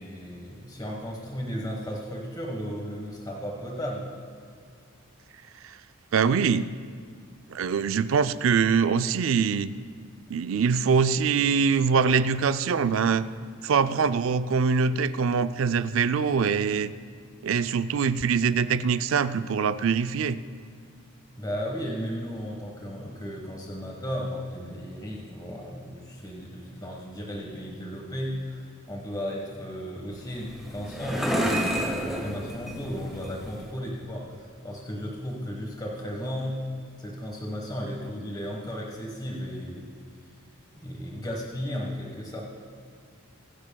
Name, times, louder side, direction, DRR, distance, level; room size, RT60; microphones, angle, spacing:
voice 1, 0.0-4.1 21.4-36.6 37.0-39.9 40.7-42.4, equal, 20° left, -1 dB, 1.3 m, -35 dB
voice 2, 6.1-6.6 7.5-9.7 10.3-13.3 13.6-16.9 17.4-20.4, right 6 dB, 65° right, 13 dB, 0.4 m, -23 dB
sound 1, 30.1-33.7, equal, ahead, 1.4 m, -30 dB
24.0 x 10.5 x 2.3 m, 2.3 s
head